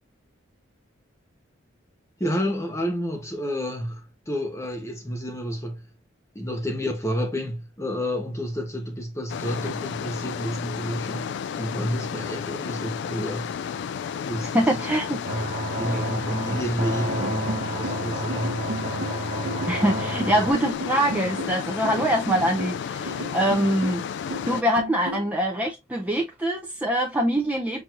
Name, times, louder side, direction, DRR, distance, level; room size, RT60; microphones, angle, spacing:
voice 1, 2.2-5.9 6.3-13.5 14.3-14.8 15.2-18.7, equal, 15° left, 1.1 m, -30 dB
sound 1, 9.3-24.6, left 7 dB, 60° left, 0.3 m, -32 dB
voice 2, 14.5-15.2 15.9-16.0 19.7-24.0 24.5-27.8, right 1 dB, 10° right, 0.5 m, -24 dB
sound 2, 15.2-20.5, right 2 dB, 35° right, 0.8 m, -31 dB
sound 3, 17.1-25.3, equal, 70° right, 0.8 m, -34 dB
6.0 x 2.7 x 2.5 m
head